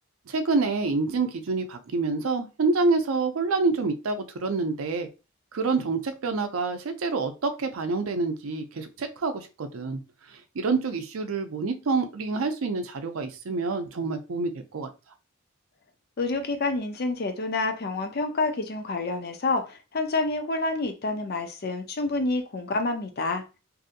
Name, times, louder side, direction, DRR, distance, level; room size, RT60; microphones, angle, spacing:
voice 1, 0.3-5.1 5.5-10.0 10.3-14.9, right 3 dB, 85° right, 8 dB, 0.5 m, -27 dB
voice 2, 16.2-23.4, left 3 dB, 50° left, 6 dB, 0.5 m, -28 dB
2.7 x 2.6 x 2.5 m, 0.30 s
head